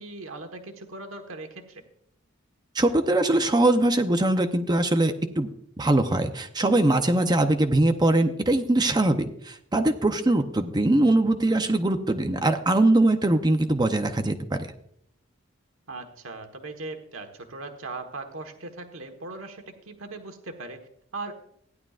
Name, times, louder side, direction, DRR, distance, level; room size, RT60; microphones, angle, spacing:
voice 1, 0.0-1.8 15.9-21.3, right 3 dB, 85° right, 5 dB, 1.4 m, -39 dB
voice 2, 2.7-5.5 5.8-14.7, right 2 dB, 20° right, 7 dB, 0.7 m, -22 dB
16.0 x 10.5 x 2.5 m, 0.69 s
head